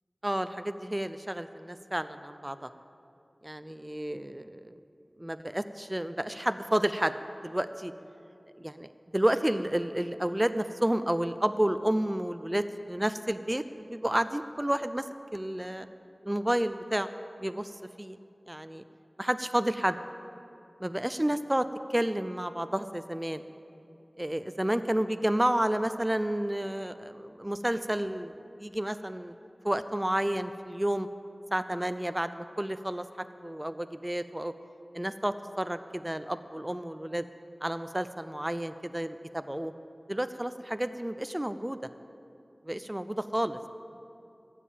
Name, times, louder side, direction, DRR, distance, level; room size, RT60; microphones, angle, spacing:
voice 1, 0.2-2.7 3.4-4.7 5.2-7.1 7.4-7.9 8.6-15.0 15.3-15.9 16.2-17.1 17.4-17.7 18.0-18.2 18.5-18.8 19.2-20.0 20.8-23.4 24.2-28.3 28.6-29.3 29.6-31.1 31.5-33.0 33.4-34.5 34.9-37.3 37.6-39.7 40.1-41.8 42.6-43.6, right 1 dB, 15° right, 10 dB, 0.4 m, -30 dB
14.5 x 7.3 x 8.5 m, 2.7 s
wide cardioid pair, 60°, 0 cm